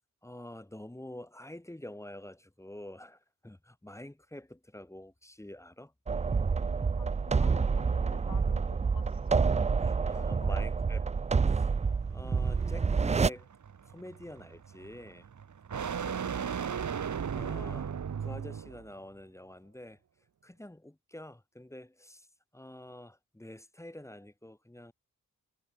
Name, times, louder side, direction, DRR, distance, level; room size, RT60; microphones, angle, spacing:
voice 1, 0.2-5.9 9.8-11.0 11.3-11.7 12.1-13.5 13.8-15.3 17.3-20.0 20.4-22.3 22.5-24.9, left 1 dB, 10° left, 1.5 m, -47 dB
sound 1, 6.1-13.3, right 5 dB, 20° right, 0.4 m, -28 dB
voice 2, 7.0-9.4 9.6-9.7 10.1-10.6 16.0-16.5, left 8 dB, 85° left, 5.8 m, -50 dB
sound 2, 11.8-18.9, right 7 dB, 60° right, 1.9 m, -37 dB
cardioid pair, 90°, 34 cm